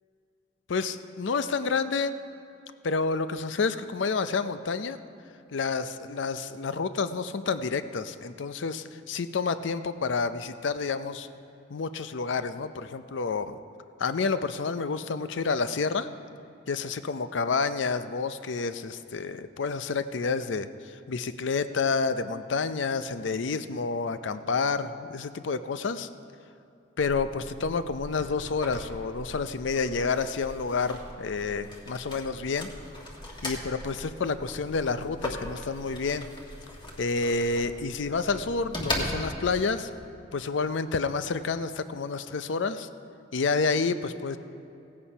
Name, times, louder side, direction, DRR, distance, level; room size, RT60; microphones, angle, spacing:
voice 1, 0.7-2.2 2.8-5.0 5.5-11.3 11.7-13.6 14.0-16.1 16.7-26.1 27.0-32.7 33.4-36.3 37.0-39.9 40.3-42.9 43.3-44.4, left 4 dB, 70° left, 12 dB, 0.5 m, -29 dB
sound 1, 27.0-39.6, left 1 dB, 25° left, 1.7 m, -39 dB
16.0 x 8.6 x 5.5 m, 2.6 s
head